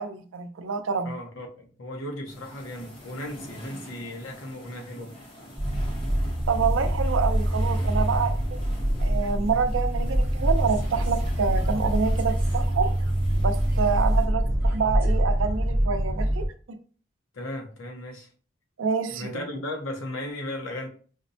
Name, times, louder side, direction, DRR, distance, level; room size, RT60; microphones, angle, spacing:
voice 1, 0.0-1.1 6.5-8.4 9.0-12.9 13.4-16.8 18.8-19.4, right 5 dB, 80° right, 0.5 m, -27 dB
voice 2, 1.0-5.1 17.3-18.3 19.1-20.9, left 1 dB, 85° left, 0.8 m, -36 dB
sound 1, 2.3-14.3, equal, 25° left, 0.7 m, -46 dB
sound 2, 5.5-16.5, right 1 dB, 10° right, 0.7 m, -25 dB
5.0 x 2.1 x 2.7 m
head